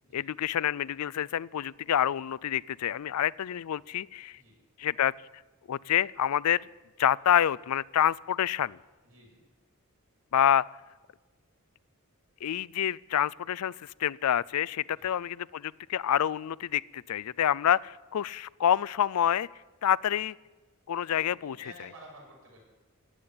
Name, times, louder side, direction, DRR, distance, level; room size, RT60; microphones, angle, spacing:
voice 1, 0.1-4.4 4.8-5.1 5.7-6.7 7.0-8.8 10.3-10.6 12.4-19.5 19.8-20.4 20.9-21.6, left 10 dB, 85° left, 21 dB, 0.4 m, -27 dB
voice 2, 9.0-9.4 14.9-15.1 21.4-22.6, right 1 dB, 70° right, -1 dB, 6.7 m, -52 dB
16.5 x 8.8 x 9.6 m, 1.3 s
head